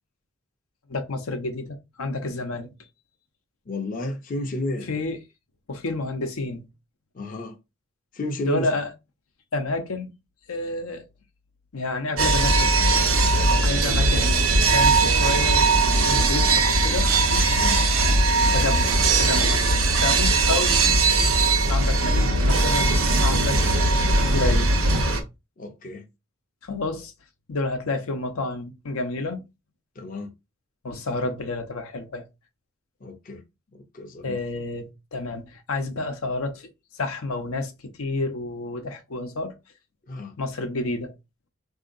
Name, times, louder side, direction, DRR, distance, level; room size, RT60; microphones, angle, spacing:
voice 1, 0.9-2.7 4.9-5.2 5.7-6.7 8.5-8.9 9.5-10.1 10.5-11.0 11.7-12.9 13.6-15.7 16.0-17.1 18.5-18.8 19.2-20.8 21.7-23.6 23.9-24.8 26.6-27.1 27.5-29.4 30.8-32.2 34.2-36.7 36.9-39.5 40.4-41.1, left 2 dB, 90° left, 0.7 m, -30 dB
voice 2, 3.7-5.0 7.1-7.6 8.1-8.7 17.5-17.8 23.5-23.8 25.6-26.1 30.0-30.3 33.0-33.4 33.7-34.4 40.1-40.4, left 1 dB, 40° left, 0.5 m, -32 dB
sound 1, 12.2-25.2, right 3 dB, 80° right, 0.9 m, -20 dB
3.7 x 2.7 x 2.5 m
head